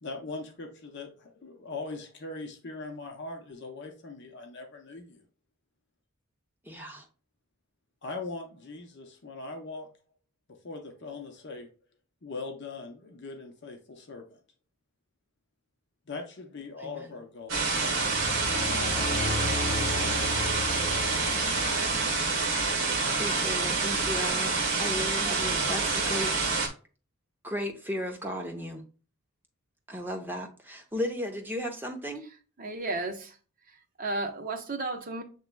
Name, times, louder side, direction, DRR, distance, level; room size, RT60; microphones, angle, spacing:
voice 1, 0.0-5.2 8.0-9.9 10.5-11.7 12.2-14.4 16.1-17.6 18.6-20.5 22.5-22.6, left 3 dB, 50° left, 0.7 m, -41 dB
voice 2, 6.6-7.1 16.8-17.1 23.1-26.3 27.4-28.8 29.9-32.2, equal, 10° right, 0.7 m, -35 dB
sound 1, 17.5-26.7, right 4 dB, 60° right, 1.2 m, -27 dB
sound 2, 17.9-22.6, left 3 dB, 30° left, 0.4 m, -35 dB
voice 3, 32.6-33.3 34.0-35.2, right 2 dB, 40° right, 0.9 m, -33 dB
7.7 x 3.0 x 2.2 m
head